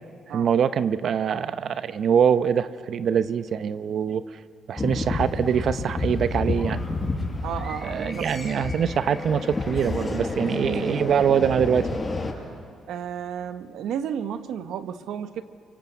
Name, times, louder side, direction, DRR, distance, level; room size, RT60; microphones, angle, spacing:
voice 1, 0.3-4.2 4.7-6.8 7.8-11.9, right 8 dB, 60° right, 13 dB, 0.8 m, -23 dB
sound 1, 4.8-12.3, left 3 dB, 20° left, 6.1 m, -30 dB
voice 2, 7.4-8.3 12.9-15.4, right 8 dB, 80° right, 10 dB, 1.2 m, -32 dB
28.5 x 25.0 x 8.1 m, 2.2 s
cardioid pair, 90°, 0 cm